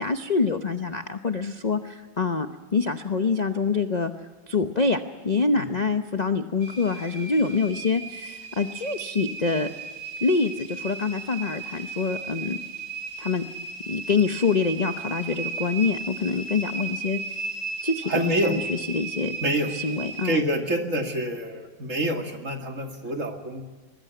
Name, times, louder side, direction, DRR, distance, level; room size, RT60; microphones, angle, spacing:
voice 1, 0.0-4.1 4.5-9.7 10.2-12.6 13.2-13.4 13.9-17.5 17.8-19.4 19.7-20.4, left 4 dB, 40° left, 8 dB, 0.5 m, -26 dB
sound 1, 6.6-20.4, right 4 dB, 85° right, 3.9 m, -36 dB
voice 2, 18.1-18.5 19.4-19.7 20.2-23.6, right 1 dB, 40° right, 3 dB, 2.6 m, -27 dB
24.0 x 20.5 x 9.3 m, 1.3 s
omnidirectional pair, 2.1 m